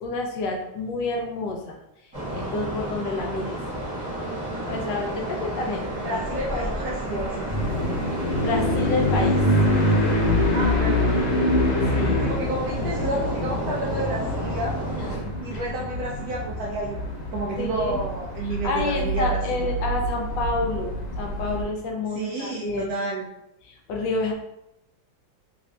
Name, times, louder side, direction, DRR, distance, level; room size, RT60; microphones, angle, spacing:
voice 1, 0.0-1.8 2.0-3.6 4.7-6.2 6.5-6.7 8.3-9.4 9.7-10.1 11.9-12.2 15.0-15.7 17.6-18.1 18.6-22.9 23.6-24.3, left 3 dB, 75° left, 1 dB, 1.2 m, -29 dB
sound 1, 2.1-15.2, right 1 dB, 15° right, 1.0 m, -32 dB
voice 2, 6.0-7.5 10.5-11.3 12.2-14.8 15.4-17.0 17.3-19.7 22.1-23.3, right 2 dB, 75° right, -3 dB, 0.8 m, -30 dB
sound 2, 7.5-21.6, left 1 dB, 50° left, 1.2 m, -25 dB
3.5 x 2.5 x 3.2 m, 0.86 s
omnidirectional pair, 2.1 m